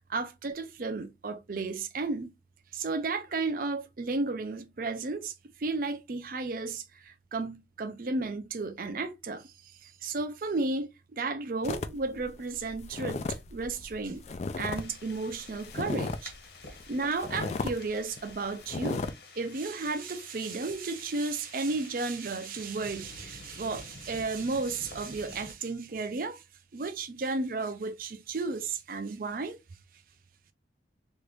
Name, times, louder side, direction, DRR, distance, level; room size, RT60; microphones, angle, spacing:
voice 1, 0.0-2.3 2.7-5.3 5.6-9.5 9.8-14.2 14.6-16.3 16.9-19.0 19.4-26.4 26.7-29.6, right 3 dB, 50° right, 0.5 m, -33 dB
sound 1, 11.6-14.9 15.1-16.3 16.8-16.9 17.2-17.8 18.2-18.3 18.6-19.1, left 3 dB, 35° left, 0.3 m, -35 dB
sound 2, 14.7-25.5, left 3 dB, 70° left, 1.4 m, -50 dB
3.1 x 2.5 x 3.2 m
head